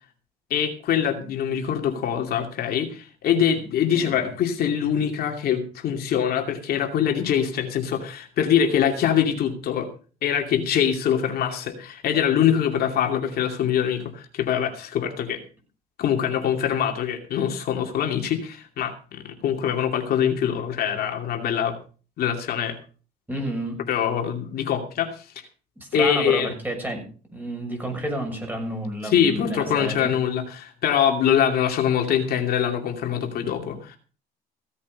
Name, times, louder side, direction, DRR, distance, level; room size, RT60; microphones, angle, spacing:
voice 1, 0.5-9.9 10.2-15.4 16.0-21.8 22.2-22.8 23.9-25.2 25.9-26.5 29.0-34.0, left 8 dB, 65° left, 3 dB, 2.6 m, -24 dB
voice 2, 23.3-23.8 25.8-27.0 27.3-30.1, right 1 dB, 10° right, 3 dB, 6.6 m, -30 dB
16.5 x 8.5 x 5.3 m, 0.39 s
cardioid pair, 110°, 17 cm